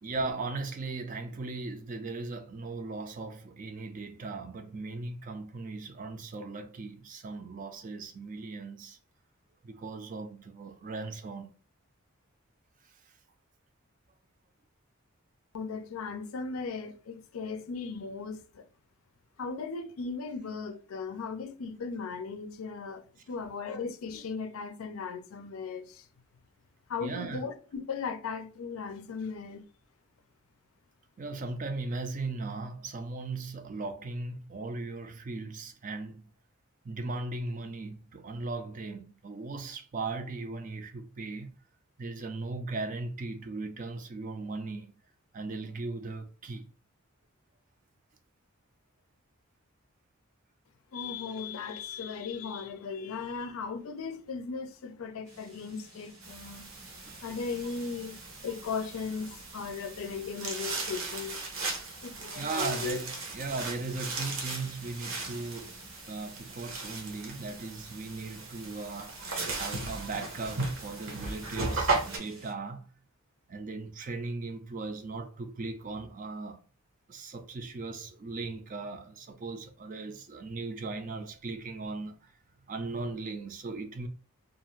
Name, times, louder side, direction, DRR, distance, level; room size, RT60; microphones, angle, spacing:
voice 1, 0.0-9.0 9.6-11.5 12.8-13.1 27.0-27.4 31.2-36.3 36.8-41.5 42.0-44.9 45.3-46.6 57.1-57.2 62.4-65.8 66.1-69.2 69.5-72.9 73.5-76.6 77.1-82.3 82.7-84.1, right 3 dB, 40° right, 0.4 m, -38 dB
voice 2, 15.5-18.7 19.4-26.1 26.9-29.6 50.9-56.7 57.2-61.4 62.0-63.0, left 5 dB, 80° left, 0.4 m, -37 dB
sound 1, 55.2-72.5, right 1 dB, 90° right, 1.2 m, -54 dB
sound 2, 56.2-72.2, right 3 dB, 70° right, 0.8 m, -37 dB
2.5 x 2.4 x 3.0 m
head